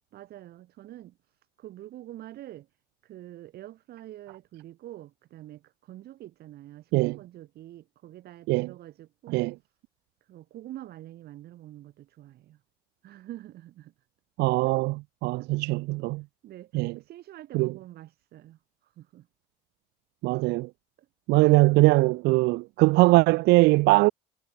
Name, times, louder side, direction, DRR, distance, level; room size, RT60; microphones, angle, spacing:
voice 1, 0.1-1.2 1.6-2.7 3.0-9.5 10.3-12.6 13.0-13.9 14.7-14.8 15.4-15.5 16.4-18.6 19.0-19.3 21.3-21.6, right 14 dB, 70° right, 3.0 m, -45 dB
voice 2, 14.4-16.2 16.7-17.0 17.5-17.7 20.2-20.7 21.3-24.1, right 22 dB, 85° right, 0.4 m, -21 dB
cardioid pair, 110°, 17 cm